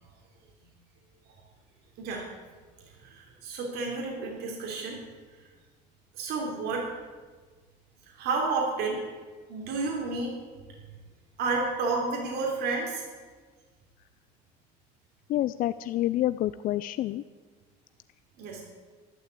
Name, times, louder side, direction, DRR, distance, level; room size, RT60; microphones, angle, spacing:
voice 1, 2.0-2.3 3.0-5.0 6.1-6.9 8.2-9.0 9.5-10.4 11.4-13.0 18.4-18.6, right 3 dB, 65° right, -1 dB, 3.4 m, -30 dB
voice 2, 15.3-17.2, left 14 dB, 50° left, 13 dB, 0.5 m, -28 dB
12.5 x 11.5 x 8.4 m, 1.5 s
cardioid pair, 120°, 18 cm